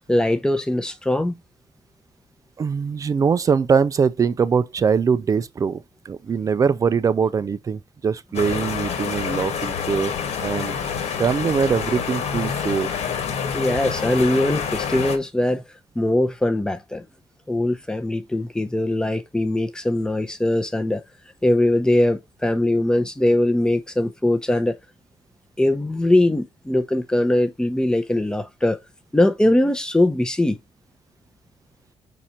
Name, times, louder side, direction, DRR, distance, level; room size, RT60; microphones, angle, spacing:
voice 1, 0.1-1.3 13.5-15.6 16.0-17.1 17.5-21.0 21.4-24.8 25.6-28.8 29.1-30.6, left 1 dB, 5° left, 0.7 m, -21 dB
voice 2, 2.6-10.2 10.4-10.8 11.2-12.9, right 6 dB, 30° right, 0.5 m, -22 dB
sound 1, 8.3-15.2, left 6 dB, 75° left, 1.7 m, -27 dB
6.2 x 4.2 x 4.3 m
cardioid pair, 175°, 11 cm